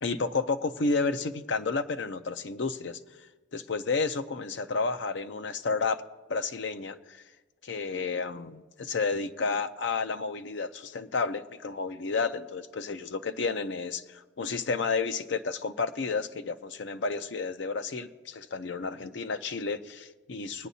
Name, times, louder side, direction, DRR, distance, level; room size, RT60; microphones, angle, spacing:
voice 1, 0.0-3.0 3.5-6.0 6.3-7.2 7.6-20.7, left 4 dB, 65° left, 9 dB, 0.5 m, -31 dB
22.5 x 9.0 x 2.8 m, 1.3 s
head